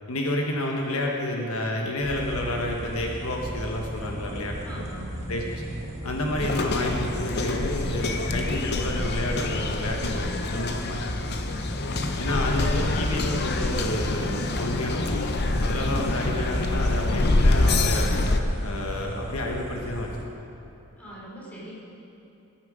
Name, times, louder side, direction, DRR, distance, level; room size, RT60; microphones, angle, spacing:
voice 1, 0.1-4.6 5.3-5.7 6.0-11.1 12.2-18.1 18.6-20.1, left 1 dB, 70° left, 0 dB, 1.3 m, -30 dB
sound 1, 2.0-20.2, equal, 30° right, 1.2 m, -36 dB
voice 2, 4.6-5.2 21.0-21.7, right 1 dB, 5° left, -7 dB, 3.6 m, -42 dB
sound 2, 6.4-18.4, left 2 dB, 45° left, 0.8 m, -26 dB
19.5 x 8.8 x 5.0 m, 2.9 s
head